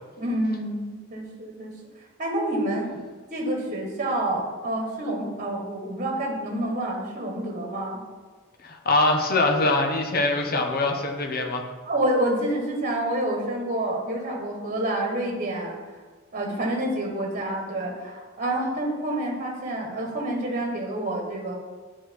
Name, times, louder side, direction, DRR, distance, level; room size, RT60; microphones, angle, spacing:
voice 1, 0.2-1.7 2.2-2.9 3.3-8.0 11.8-16.0 16.3-21.5, right 1 dB, 35° right, 1 dB, 1.5 m, -28 dB
voice 2, 8.6-11.6, left 2 dB, 45° left, 3 dB, 1.0 m, -23 dB
10.0 x 4.4 x 4.6 m, 1.4 s
head